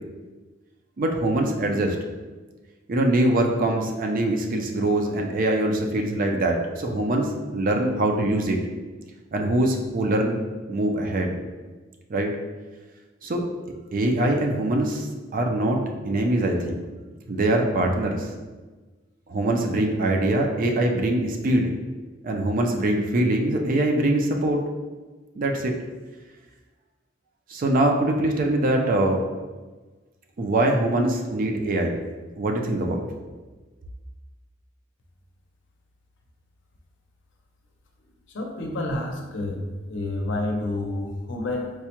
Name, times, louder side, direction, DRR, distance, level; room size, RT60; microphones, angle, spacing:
voice 1, 1.0-2.0 2.9-8.6 9.3-10.4 10.7-11.3 12.1-12.3 13.2-13.4 13.9-15.1 15.3-15.8 16.0-16.8 17.3-18.3 19.3-21.7 22.2-24.6 25.4-25.7 27.5-29.2 30.4-31.9 32.4-33.0, right 1 dB, 45° right, 2 dB, 0.4 m, -23 dB
voice 2, 38.3-39.6 39.9-41.7, left 2 dB, 70° left, 1 dB, 0.6 m, -29 dB
4.6 x 2.1 x 2.9 m, 1.3 s
head